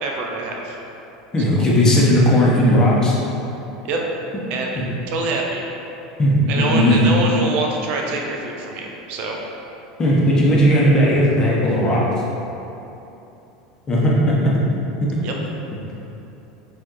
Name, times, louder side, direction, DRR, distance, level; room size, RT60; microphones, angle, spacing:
voice 1, 0.0-0.8 1.5-1.6 3.8-4.0 4.5-4.9 5.1-5.6 6.5-9.4 15.2-15.3, right 3 dB, 55° right, 0 dB, 0.5 m, -25 dB
voice 2, 1.3-3.2 6.2-7.1 10.0-12.1 13.9-14.5 15.0-15.1, equal, 25° left, -5 dB, 0.9 m, -16 dB
4.3 x 2.6 x 3.0 m, 3.0 s
hypercardioid pair, 90°, 3 cm